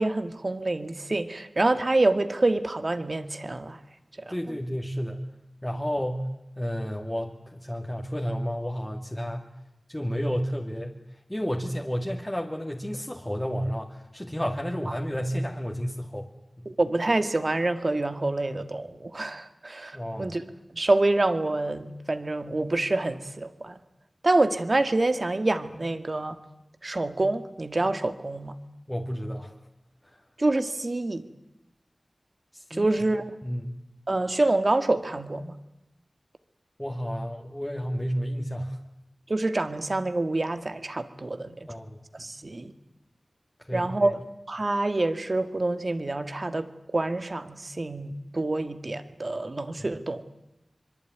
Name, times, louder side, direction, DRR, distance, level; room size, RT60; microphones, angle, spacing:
voice 1, 0.0-3.8 4.3-4.4 16.7-20.4 20.7-23.8 24.2-26.4 26.8-28.6 30.4-31.2 32.7-33.3 34.1-35.6 39.3-41.7 42.1-42.7 43.7-44.2 44.5-50.2, right 2 dB, 50° right, 10 dB, 2.0 m, -27 dB
voice 2, 4.3-5.2 5.6-6.3 6.6-9.5 9.9-11.0 11.3-16.3 19.9-20.3 28.9-29.5 32.5-32.9 33.4-33.8 36.8-38.8 41.7-42.0 43.7-44.1 49.8-49.9, equal, 10° left, 1 dB, 2.4 m, -31 dB
25.0 x 23.0 x 9.5 m, 0.88 s
wide cardioid pair, 60°, 0 cm